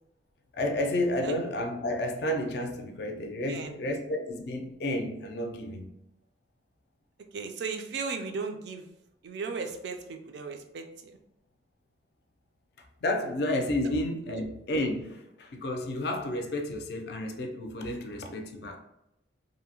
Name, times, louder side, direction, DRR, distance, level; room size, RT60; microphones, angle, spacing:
voice 1, 0.5-5.9 13.0-18.8, left 1 dB, 60° left, 4 dB, 0.4 m, -31 dB
voice 2, 3.5-3.8 7.3-8.9 9.2-11.2 13.8-14.0 14.3-14.4, right 4 dB, 65° right, 5 dB, 0.3 m, -36 dB
2.7 x 2.0 x 2.7 m, 0.85 s
head